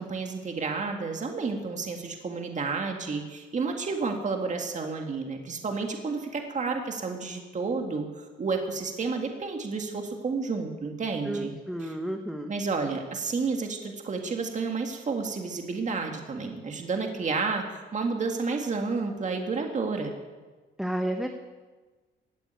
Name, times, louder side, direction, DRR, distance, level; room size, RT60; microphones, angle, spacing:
voice 1, 0.0-11.5 11.8-12.0 12.5-20.1, right 4 dB, 40° right, 3 dB, 2.0 m, -31 dB
voice 2, 11.3-12.5 20.8-21.3, right 1 dB, ahead, 4 dB, 1.1 m, -31 dB
15.5 x 9.0 x 9.3 m, 1.3 s
cardioid pair, 90°, 20 cm